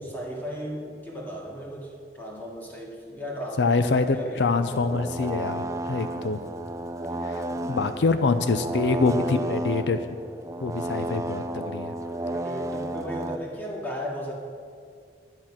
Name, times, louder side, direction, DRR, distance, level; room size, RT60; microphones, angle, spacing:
voice 1, 0.1-4.6 7.3-7.6 12.2-14.3, equal, 10° left, -3 dB, 2.1 m, -36 dB
voice 2, 3.6-6.4 7.2-10.0 10.6-11.9, left 4 dB, 85° left, 10 dB, 0.5 m, -25 dB
sound 1, 4.7-13.4, right 1 dB, 20° right, 0.5 m, -32 dB
11.0 x 8.9 x 5.8 m, 2.3 s
head